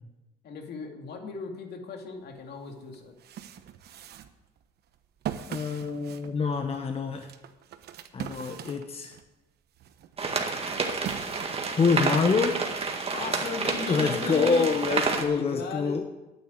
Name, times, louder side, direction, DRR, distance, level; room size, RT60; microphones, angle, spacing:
voice 1, 0.4-3.1 13.1-14.7 15.1-16.0, left 5 dB, 65° left, 3 dB, 2.5 m, -37 dB
sound 1, 2.4-2.5 2.9-9.3 9.7-12.4, right 10 dB, 65° right, 1.0 m, -41 dB
voice 2, 5.5-7.3 8.1-9.2 11.8-12.6 13.9-16.0, left 5 dB, 35° left, 5 dB, 1.2 m, -26 dB
sound 2, 10.2-15.2, right 4 dB, 35° right, 2.0 m, -29 dB
9.4 x 9.1 x 9.2 m, 1.0 s
cardioid pair, 90°, 18 cm